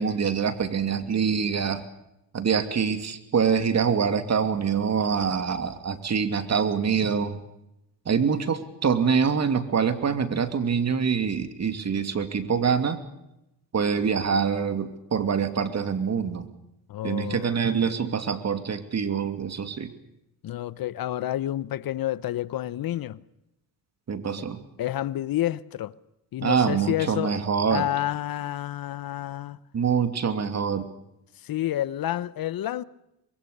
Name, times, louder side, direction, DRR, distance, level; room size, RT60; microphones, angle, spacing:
voice 1, 0.0-1.8 2.3-7.4 8.0-13.0 13.7-16.5 17.0-19.9 24.1-24.6 26.4-27.9 29.7-30.9, right 6 dB, 35° right, 2.8 m, -25 dB
voice 2, 16.9-17.5 17.8-17.9 20.4-23.2 24.4-24.5 24.8-25.9 26.3-27.3 27.7-29.6 31.4-32.8, left 13 dB, 55° left, 1.0 m, -29 dB
25.0 x 22.5 x 6.8 m
cardioid pair, 95°, 43 cm